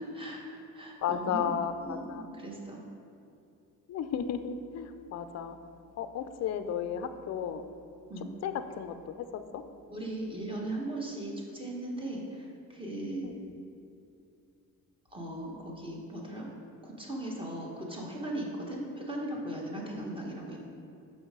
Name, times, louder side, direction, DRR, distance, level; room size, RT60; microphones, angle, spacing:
voice 1, 0.0-1.5 1.8-2.8 8.1-8.3 9.9-13.3 15.1-16.5 16.8-20.6, right 1 dB, 15° right, -2 dB, 1.4 m, -38 dB
voice 2, 1.0-2.3 3.9-5.6 6.0-7.6 8.4-9.6 13.2-13.5 19.9-20.0, left 8 dB, 45° left, 10 dB, 0.5 m, -34 dB
6.9 x 5.5 x 3.8 m, 2.6 s
cardioid pair, 90°, 36 cm